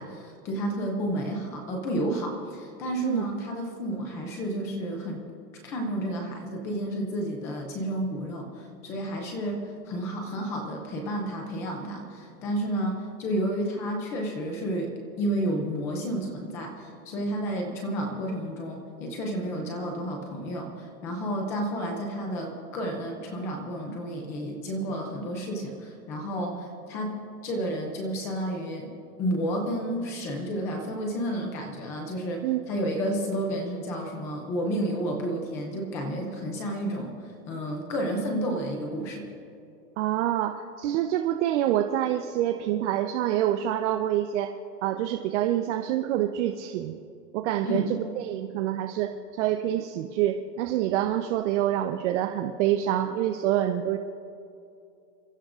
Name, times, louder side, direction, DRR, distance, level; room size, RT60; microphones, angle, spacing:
voice 1, 0.0-5.2 5.6-27.1 27.4-28.9 29.2-39.3 47.6-47.9, right 1 dB, 5° left, 2 dB, 0.3 m, -31 dB
voice 2, 40.0-44.5 44.8-47.0 47.3-54.0, right 12 dB, 45° right, 6 dB, 0.9 m, -26 dB
28.0 x 15.0 x 2.5 m, 2.6 s
hypercardioid pair, 130°, 49 cm